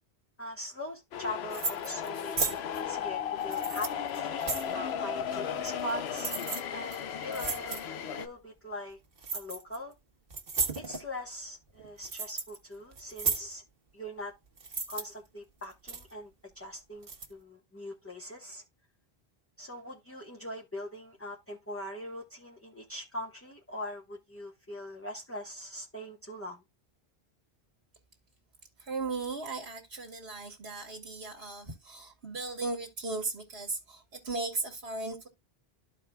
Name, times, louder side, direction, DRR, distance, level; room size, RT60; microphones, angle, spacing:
voice 1, 0.4-4.3 4.7-6.3 6.7-7.8 8.1-9.0 9.3-9.9 10.7-13.6 13.9-14.3 14.9-16.3 16.5-18.6 19.6-26.6, left 1 dB, 15° left, 1.1 m, -41 dB
sound 1, 1.1-8.3, left 8 dB, 80° left, 0.9 m, -35 dB
sound 2, 1.5-2.1 2.4-2.6 3.4-4.7 5.6-5.9 6.2-6.6 6.9-7.0 7.3-7.9 9.2-9.8 10.3-11.0 11.7-12.6 12.9-13.5 14.6-15.0 15.6-16.1 17.0-17.3, right 4 dB, 60° right, 1.5 m, -34 dB
voice 2, 28.8-35.3, right 3 dB, 80° right, 1.8 m, -37 dB
13.5 x 4.8 x 2.2 m
omnidirectional pair, 1.0 m